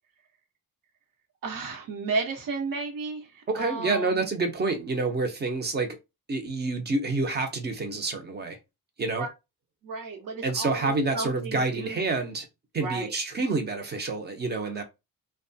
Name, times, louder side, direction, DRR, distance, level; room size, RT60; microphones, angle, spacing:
voice 1, 1.4-4.3 9.0-9.3 9.8-12.2 12.8-13.1 14.6-14.7, right 3 dB, 70° right, 1.0 m, -33 dB
voice 2, 3.5-6.0 6.3-8.6 9.0-9.2 10.4-12.5 12.7-14.8, right 3 dB, 30° right, 0.6 m, -28 dB
2.9 x 2.2 x 2.7 m
wide cardioid pair, 165°, 34 cm